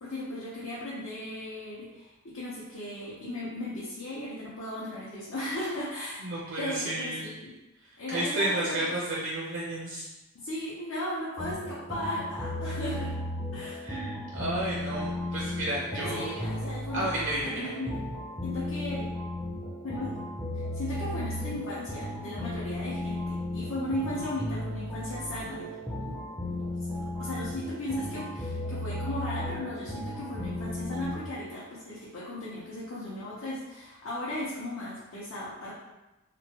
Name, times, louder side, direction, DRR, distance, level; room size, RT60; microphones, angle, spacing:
voice 1, 0.0-6.2 6.6-7.5 8.0-8.9 10.3-13.1 13.5-13.8 15.9-17.9 18.4-19.1 19.8-20.2 20.5-25.7 26.0-26.2 26.5-26.6 27.0-35.7, left 1 dB, 65° left, -8 dB, 0.7 m, -36 dB
voice 2, 6.2-7.2 8.1-10.0 13.8-17.7, right 1 dB, 55° right, -5 dB, 0.5 m, -32 dB
sound 1, 11.4-31.1, left 1 dB, 10° left, 0.5 m, -35 dB
3.0 x 2.2 x 2.9 m, 1.0 s
head